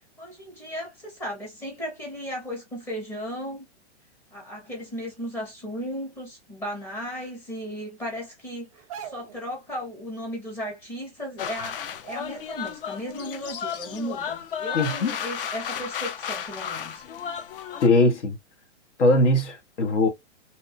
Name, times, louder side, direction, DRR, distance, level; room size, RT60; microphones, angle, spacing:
voice 1, 0.0-3.7 4.3-8.7 9.0-17.0, equal, 5° left, 0.7 m, -35 dB
sound 1, 8.7-9.5 10.9-11.0 11.3-11.6 11.9-12.8 13.2-13.3 14.0-14.1 14.7-15.3 15.7-15.8, right 8 dB, 30° right, 0.4 m, -43 dB
sound 2, 11.4-17.9, left 8 dB, 50° left, 0.4 m, -33 dB
voice 2, 14.7-15.2 17.8-18.4 19.0-20.1, left 2 dB, 75° left, 1.1 m, -20 dB
2.8 x 2.2 x 2.4 m
hypercardioid pair, 160°, 35 cm